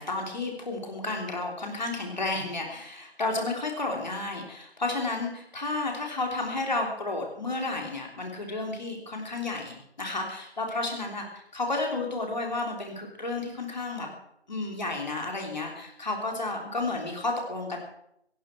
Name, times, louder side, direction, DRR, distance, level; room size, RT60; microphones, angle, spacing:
voice 1, 0.0-14.1 14.5-17.8, left 2 dB, 45° left, 1 dB, 3.6 m, -32 dB
17.0 x 16.0 x 4.6 m, 0.75 s
figure-of-eight pair, 160°, 32 cm